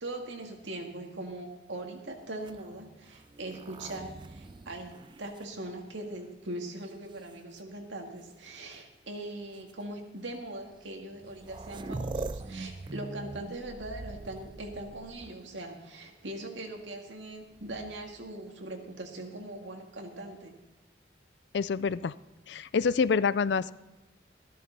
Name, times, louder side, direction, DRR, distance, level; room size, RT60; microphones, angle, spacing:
voice 1, 0.0-20.5, right 1 dB, 85° right, 2 dB, 2.1 m, -41 dB
sound 1, 2.3-6.2 6.9-7.6 8.7-8.8 9.5-9.7 10.9-11.0 11.1-15.6 17.5-18.2, right 3 dB, 25° right, 0.3 m, -43 dB
voice 2, 21.5-22.1 22.5-23.7, left 5 dB, 70° left, 18 dB, 0.4 m, -27 dB
14.5 x 13.0 x 4.1 m, 1.1 s
head